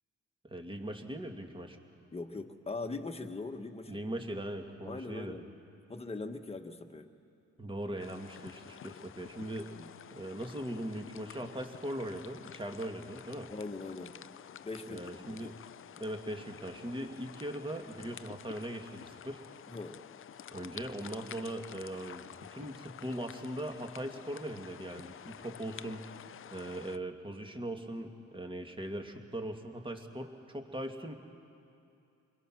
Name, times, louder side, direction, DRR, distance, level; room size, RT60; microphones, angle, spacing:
voice 1, 0.5-1.8 3.9-5.3 7.6-9.7 10.1-13.5 14.9-15.6 16.0-19.4 20.5-26.2 26.5-31.1, right 1 dB, 15° right, 4 dB, 2.3 m, -40 dB
voice 2, 2.1-4.0 4.8-5.5 5.9-7.1 9.7-9.9 13.5-14.1 14.6-15.4 19.7-20.0, left 3 dB, 20° left, 5 dB, 1.6 m, -41 dB
sound 1, 8.0-27.0, left 9 dB, 45° left, 0.6 m, -50 dB
29.0 x 21.5 x 6.2 m, 2.6 s
cardioid pair, 90°, 30 cm